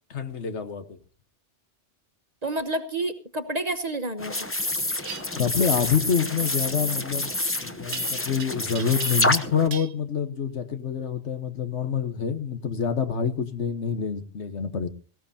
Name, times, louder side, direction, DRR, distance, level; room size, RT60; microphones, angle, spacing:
voice 1, 0.1-1.0 5.3-7.3 7.6-14.9, left 7 dB, 70° left, 1.5 m, -27 dB
voice 2, 2.4-4.5, right 2 dB, 35° right, 1.1 m, -29 dB
sound 1, 4.2-9.7, left 2 dB, 15° left, 0.7 m, -28 dB
sound 2, 5.0-5.2 7.9-8.4 8.7-9.4 9.7-9.9, right 8 dB, 90° right, 1.2 m, -37 dB
18.5 x 17.0 x 2.8 m
omnidirectional pair, 1.2 m